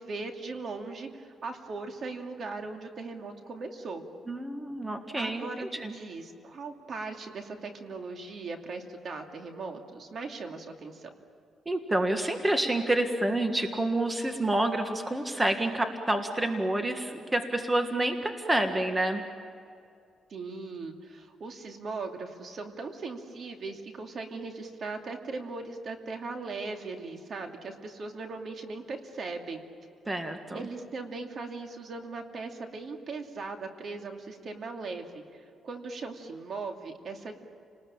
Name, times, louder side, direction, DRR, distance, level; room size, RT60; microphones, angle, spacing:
voice 1, 0.0-4.0 5.2-11.1 20.3-29.6 30.5-37.4, right 3 dB, 55° right, 4 dB, 2.6 m, -39 dB
voice 2, 4.3-6.0 11.6-19.2 30.1-30.6, right 1 dB, 15° right, 5 dB, 1.7 m, -28 dB
30.0 x 20.0 x 8.9 m, 2.5 s
cardioid pair, 110°, 0 cm